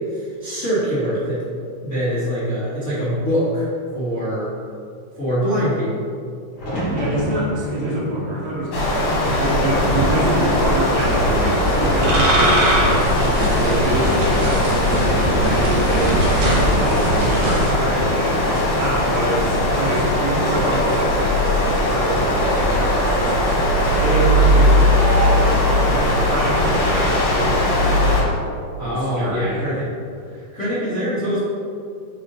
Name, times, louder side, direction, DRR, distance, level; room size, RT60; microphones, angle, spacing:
voice 1, 0.1-1.4 1.8-3.7 3.9-4.5 5.2-6.0 28.8-29.9 30.3-31.4, equal, 85° left, -13 dB, 0.6 m, -23 dB
sound 1, 6.6-10.6 11.0-11.7 13.6-14.1, equal, 45° left, 1.9 m, -31 dB
voice 2, 6.9-12.8 13.4-14.7 15.1-18.4 18.7-23.4 23.9-28.3 28.8-29.8 30.3-30.4, right 1 dB, 80° right, -6 dB, 0.9 m, -26 dB
sound 2, 8.7-28.2, left 1 dB, 60° left, 2.5 m, -19 dB
sound 3, 9.6-17.7, right 1 dB, 60° right, 1.8 m, -21 dB
5.4 x 3.9 x 5.5 m, 2.4 s
omnidirectional pair, 4.3 m